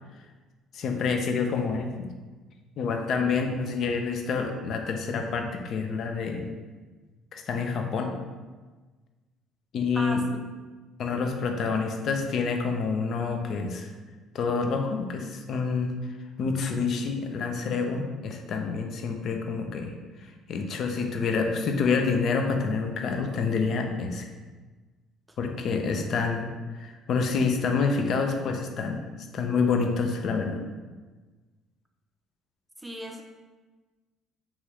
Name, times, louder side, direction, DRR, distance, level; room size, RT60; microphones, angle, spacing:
voice 1, 0.7-2.1 2.8-6.5 7.3-8.1 9.7-10.2 11.0-13.9 14.3-15.9 16.4-19.9 20.2-24.3 25.4-29.0 29.3-30.6, left 5 dB, 60° left, 4 dB, 0.4 m, -27 dB
voice 2, 9.9-10.4 25.3-25.4 32.8-33.2, right 1 dB, 10° right, 3 dB, 0.5 m, -36 dB
2.8 x 2.4 x 3.2 m, 1.3 s
hypercardioid pair, 65°, 0 cm